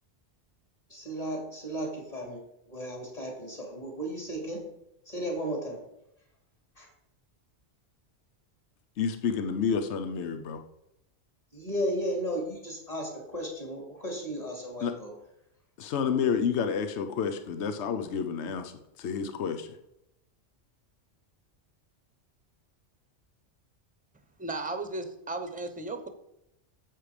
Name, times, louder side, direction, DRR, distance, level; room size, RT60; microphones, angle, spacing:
voice 1, 0.9-2.4 2.7-4.6 5.1-5.8 6.8-6.9 11.5-15.1, equal, 30° left, 0 dB, 3.0 m, -34 dB
voice 2, 9.0-10.6 14.8-14.9 15.8-18.7 19.0-19.7, left 6 dB, 70° left, 7 dB, 1.1 m, -29 dB
voice 3, 24.4-26.1, right 2 dB, 10° right, 8 dB, 0.9 m, -35 dB
10.0 x 7.8 x 5.0 m, 0.83 s
omnidirectional pair, 1.2 m